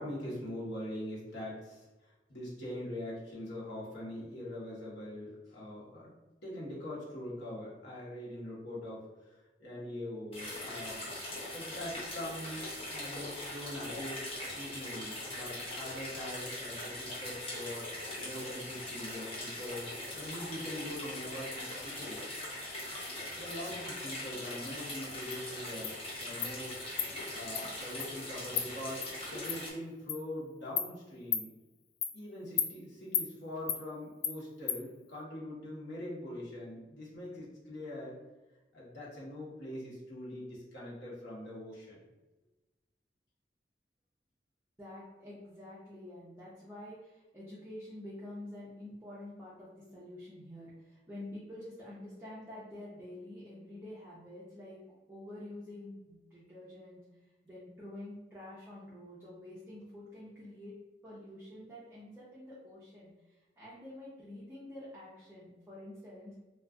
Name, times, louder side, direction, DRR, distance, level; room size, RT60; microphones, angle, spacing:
voice 1, 0.0-1.8 2.3-6.1 6.4-9.0 9.6-11.1 11.5-12.6 12.9-17.9 18.2-22.2 22.9-26.8 27.3-31.5 32.1-38.2 38.7-42.0, left 1 dB, 85° left, -5 dB, 1.1 m, -43 dB
sound 1, 10.3-29.7, left 1 dB, 35° left, 0.8 m, -41 dB
Insect, 25.3-25.4 25.8-25.9 26.4-26.5 27.0-27.1 27.5-27.6 28.0-28.1 28.6-28.7 29.0-29.1 29.5-29.6 30.1-30.2 30.8-30.9 31.3-31.5 32.0-32.1 32.6-32.7 33.1-33.3 33.7-33.8 34.2-34.4 34.7-34.8, left 8 dB, 60° left, 0.3 m, -32 dB
voice 2, 44.8-54.8 55.1-60.7 61.0-66.4, left 1 dB, 15° right, -9 dB, 0.5 m, -48 dB
2.4 x 2.4 x 3.5 m, 1.1 s
head